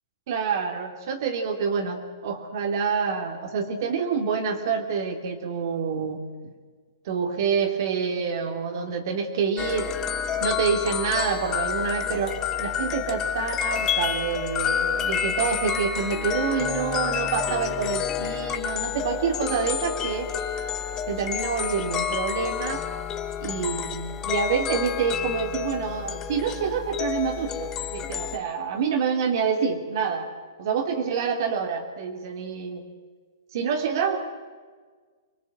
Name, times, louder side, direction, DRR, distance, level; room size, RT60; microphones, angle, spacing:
voice 1, 0.3-6.2 7.0-9.9 10.4-20.3 21.1-22.8 23.4-30.3 30.6-32.9 33.5-34.2, right 6 dB, 55° right, 4 dB, 2.8 m, -27 dB
sound 1, 9.6-28.4, left 8 dB, 20° left, 1.3 m, -29 dB
24.0 x 20.0 x 7.9 m, 1.5 s
hypercardioid pair, 140°, 2 cm